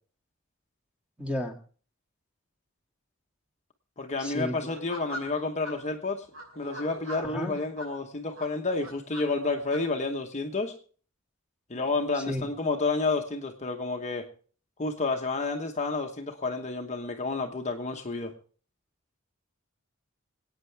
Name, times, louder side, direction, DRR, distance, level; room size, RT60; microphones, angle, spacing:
voice 1, 1.2-1.6 4.2-4.6 7.1-7.6 12.3-12.5, left 1 dB, 5° right, 2 dB, 2.1 m, -32 dB
voice 2, 4.0-6.3 6.6-10.7 11.7-14.3 14.8-18.3, left 3 dB, 35° left, 3 dB, 1.1 m, -30 dB
sound 1, 4.7-5.7 6.3-7.9 8.3-9.8, equal, 80° right, 5.3 m, -41 dB
26.5 x 8.9 x 3.4 m, 0.42 s
head